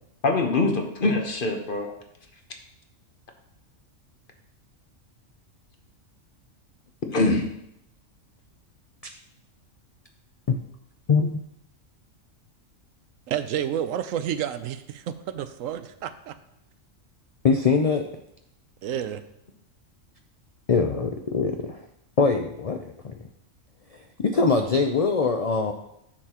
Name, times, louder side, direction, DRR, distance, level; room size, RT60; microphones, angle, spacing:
voice 1, 0.2-1.9 7.1-7.5, left 2 dB, 45° left, 4 dB, 1.0 m, -23 dB
voice 2, 11.1-11.4 17.4-18.1 20.7-21.8 22.2-23.2 23.9-25.7, left 4 dB, 70° left, 4 dB, 0.3 m, -23 dB
voice 3, 13.3-16.4 18.8-19.2, right 10 dB, 80° right, 12 dB, 1.0 m, -30 dB
10.0 x 6.7 x 2.9 m, 0.79 s
omnidirectional pair, 1.4 m